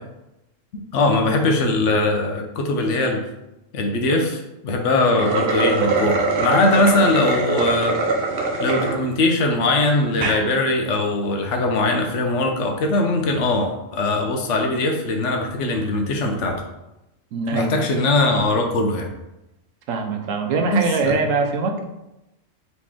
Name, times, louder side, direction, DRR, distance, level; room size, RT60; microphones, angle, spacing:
voice 1, 0.7-3.2 3.7-8.0 8.6-16.6 17.5-19.1 20.7-21.2, left 2 dB, 70° left, 3 dB, 1.0 m, -21 dB
sound 1, 5.0-9.0 9.5-9.6 10.1-10.4, right 3 dB, 55° right, 0.8 m, -22 dB
voice 2, 17.3-17.9 19.9-21.8, right 4 dB, 80° right, 4 dB, 1.0 m, -23 dB
4.1 x 3.1 x 3.6 m, 0.93 s
omnidirectional pair, 1.3 m